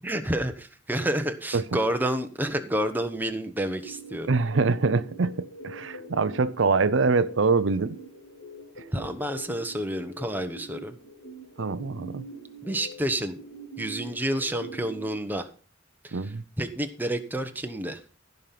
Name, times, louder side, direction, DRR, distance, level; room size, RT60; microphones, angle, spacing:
voice 1, 0.0-4.3 8.9-11.0 12.6-13.4 13.8-15.5 16.0-18.0, right 1 dB, 10° right, 1.0 m, -29 dB
sound 1, 3.8-15.1, right 2 dB, 60° left, 3.7 m, -44 dB
voice 2, 4.3-8.0 11.6-12.2 16.1-16.4, right 4 dB, 70° right, 0.6 m, -24 dB
15.5 x 5.4 x 5.8 m
head